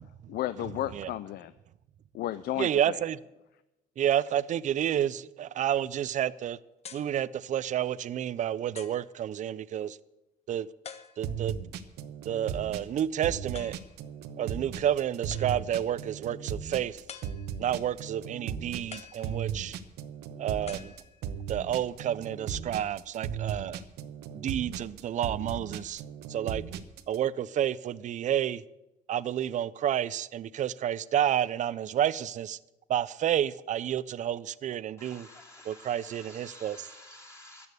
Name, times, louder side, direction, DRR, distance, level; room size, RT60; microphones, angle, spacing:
voice 1, 0.3-1.5 2.1-3.0, left 13 dB, 65° left, 0.5 m, -33 dB
voice 2, 2.6-3.2 4.0-6.6 6.9-10.0 10.5-10.7 11.2-11.5 12.3-13.7 14.4-17.0 17.6-19.8 20.4-20.9 21.5-23.8 24.3-26.0 26.3-26.6 27.1-28.6 29.1-32.6 32.9-35.3 35.7-36.8, right 10 dB, 45° right, 0.5 m, -30 dB
sound 1, 6.8-7.2 7.9-8.0 8.8-9.1 10.8-11.5 13.5-14.0 15.3-15.8 17.1-17.8 18.9-19.8 20.7-21.5, left 7 dB, 40° left, 0.9 m, -47 dB
sound 2, 11.2-27.2, right 8 dB, 80° right, 1.0 m, -37 dB
voice 3, 35.0-37.7, left 1 dB, 15° left, 2.6 m, -51 dB
13.5 x 8.7 x 8.2 m
cardioid pair, 110°, 17 cm